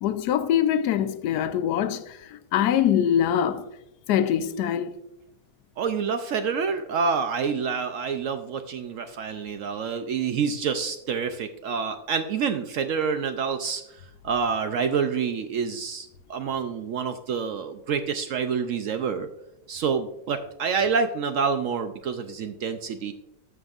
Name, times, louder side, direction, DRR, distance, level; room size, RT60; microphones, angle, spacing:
voice 1, 0.0-3.6 4.1-5.0, left 9 dB, 80° left, 1.2 m, -23 dB
voice 2, 5.8-19.3 19.7-23.1, right 6 dB, 70° right, 0.8 m, -27 dB
13.0 x 6.2 x 2.4 m
omnidirectional pair, 1.7 m